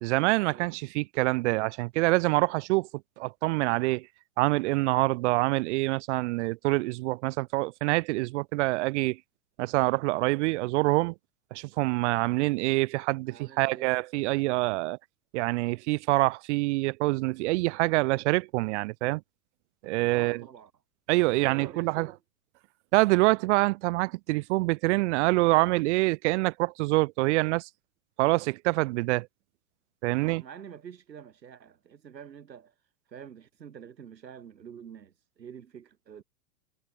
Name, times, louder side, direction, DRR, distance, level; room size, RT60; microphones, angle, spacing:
voice 1, 0.0-2.9 3.2-4.1 4.4-9.2 9.6-11.1 11.5-15.0 15.3-19.2 19.8-20.4 21.1-22.1 22.9-27.7 28.2-29.3 30.0-30.4, right 22 dB, 45° right, 0.7 m, -26 dB
voice 2, 13.3-13.9 20.1-20.7 21.3-22.2 30.2-32.7 33.1-36.2, right 8 dB, 85° right, 5.7 m, -46 dB
hypercardioid pair, 115°, 49 cm